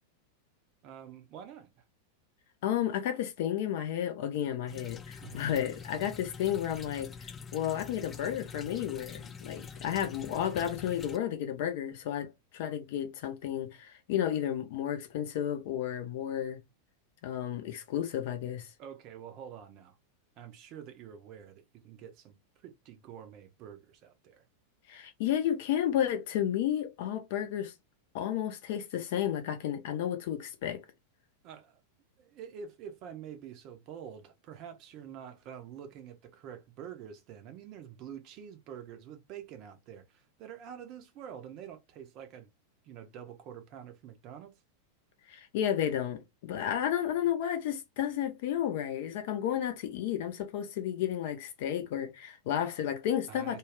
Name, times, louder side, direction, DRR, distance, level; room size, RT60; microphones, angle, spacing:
voice 1, 0.8-1.8 5.2-5.4 18.8-20.0 20.4-22.4 22.6-24.4 31.4-31.8 32.2-42.5 42.8-44.5 53.3-53.6, right 8 dB, 40° right, 0.6 m, -47 dB
voice 2, 2.6-16.6 17.2-18.7 24.9-27.7 28.1-30.8 45.3-53.6, left 10 dB, 50° left, 0.6 m, -32 dB
sound 1, 4.7-11.2, left 5 dB, 20° left, 0.3 m, -45 dB
2.4 x 2.3 x 3.3 m
figure-of-eight pair, 90°, 0 cm